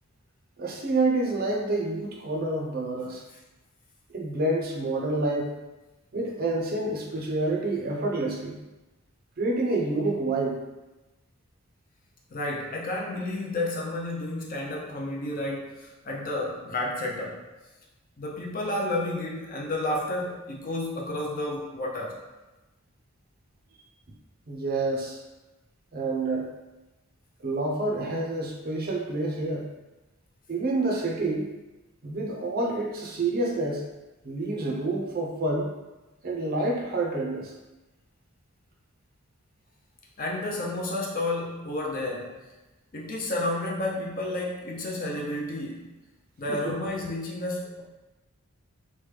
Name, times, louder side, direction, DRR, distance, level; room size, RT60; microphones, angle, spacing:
voice 1, 0.6-3.2 4.1-5.5 6.1-8.6 9.4-10.6 24.5-25.2 25.9-26.5 27.4-29.7 30.5-31.5 32.0-33.9 34.2-35.7 36.2-37.5 46.5-46.7, right 2 dB, 45° right, -1 dB, 0.5 m, -28 dB
voice 2, 12.3-17.4 18.2-22.2 40.2-42.4 42.9-45.9 46.4-47.8, left 1 dB, 40° left, -2 dB, 0.5 m, -31 dB
3.1 x 2.2 x 3.2 m, 1.1 s
head